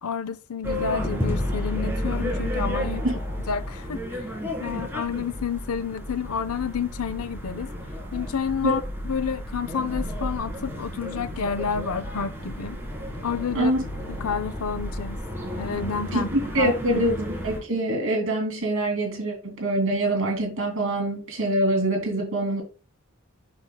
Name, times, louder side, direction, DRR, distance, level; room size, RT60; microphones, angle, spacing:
voice 1, 0.0-3.0 3.5-4.2 4.6-7.7 8.1-12.8 13.2-13.7 14.1-15.2 15.6-16.3 16.6-17.0, left 6 dB, 85° left, 0.6 m, -30 dB
sound 1, 0.6-17.6, equal, 10° right, 1.9 m, -32 dB
voice 2, 16.1-22.6, right 1 dB, 65° right, 2.5 m, -25 dB
10.5 x 4.2 x 2.2 m
head